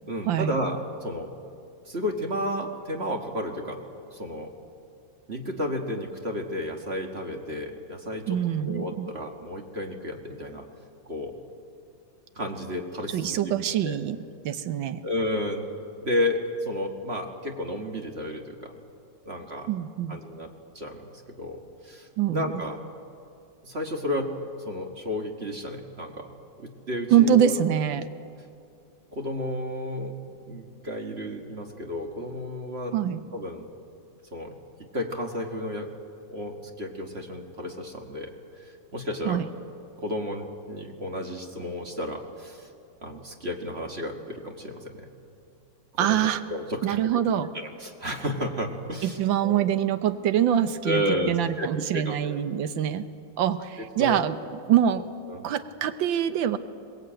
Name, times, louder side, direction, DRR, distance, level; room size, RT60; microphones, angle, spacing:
voice 1, 0.1-1.3 1.9-3.8 4.1-4.5 5.3-10.6 11.1-11.4 12.4-13.5 13.8-14.0 15.0-18.7 19.3-19.7 20.1-20.5 20.8-21.1 21.4-22.8 23.6-24.4 24.7-26.3 26.6-27.5 29.1-32.9 33.3-33.7 34.3-34.6 34.9-35.9 36.3-38.3 38.9-39.4 40.0-42.7 43.0-45.1 46.0-47.2 47.8-49.7 50.8-52.4 54.0-54.2 55.3-55.4, left 1 dB, 35° right, 3 dB, 1.9 m, -32 dB
voice 2, 8.3-9.1 13.1-14.2 14.4-15.0 19.7-20.2 22.2-22.6 27.1-28.1 32.9-33.2 39.2-39.5 46.0-46.4 46.8-47.5 49.0-53.1 53.4-54.4 54.7-55.0 55.4-56.6, right 10 dB, 75° right, 11 dB, 1.6 m, -24 dB
22.5 x 19.0 x 8.9 m, 2.5 s
omnidirectional pair, 2.1 m